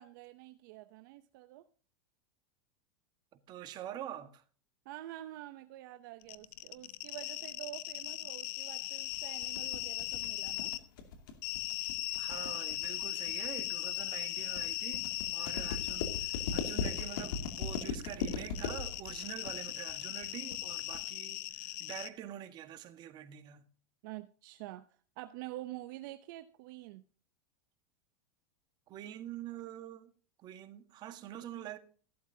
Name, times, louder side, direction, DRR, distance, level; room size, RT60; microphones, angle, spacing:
voice 1, 0.0-1.6 4.9-10.7 24.0-24.8 25.2-27.0, right 16 dB, 65° right, 0.7 m, -47 dB
voice 2, 3.3-4.4 12.2-23.6 28.9-30.1 30.4-31.8, right 11 dB, 40° right, 1.5 m, -45 dB
sound 1, 6.2-10.8 11.4-22.1, left 18 dB, 55° left, 0.7 m, -38 dB
sound 2, 9.1-21.1, left 5 dB, 70° left, 2.6 m, -39 dB
14.5 x 12.0 x 2.7 m
supercardioid pair, 125°, 12 cm